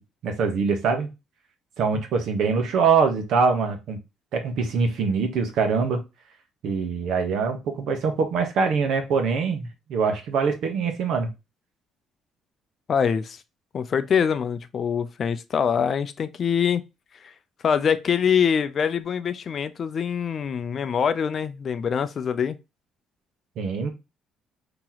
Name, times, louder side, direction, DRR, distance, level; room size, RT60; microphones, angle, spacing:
voice 1, 0.2-1.1 1.8-4.0 4.3-6.0 6.6-11.3 23.6-23.9, right 5 dB, 70° right, 1.0 m, -23 dB
voice 2, 12.9-13.4 13.7-16.8 17.1-17.3 17.6-22.6, left 7 dB, 45° left, 0.4 m, -24 dB
2.9 x 2.9 x 3.8 m
cardioid pair, 125°, 0 cm